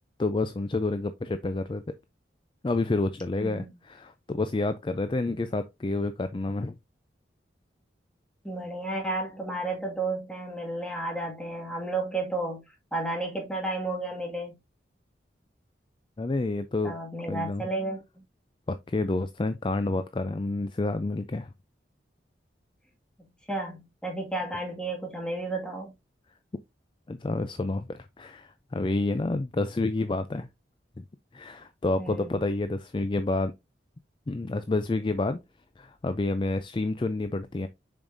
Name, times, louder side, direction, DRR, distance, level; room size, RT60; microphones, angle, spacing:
voice 1, 0.2-1.8 2.6-6.7 16.2-16.9 17.3-17.6 18.7-21.5 27.1-30.5 31.0-31.1 31.3-33.5 34.3-35.4 35.8-37.7, left 2 dB, 25° left, 0.4 m, -29 dB
voice 2, 3.4-3.7 8.4-12.6 12.9-14.5 16.8-18.0 23.5-25.9 32.0-32.4, right 2 dB, 5° left, 1.9 m, -32 dB
7.1 x 5.2 x 2.6 m
head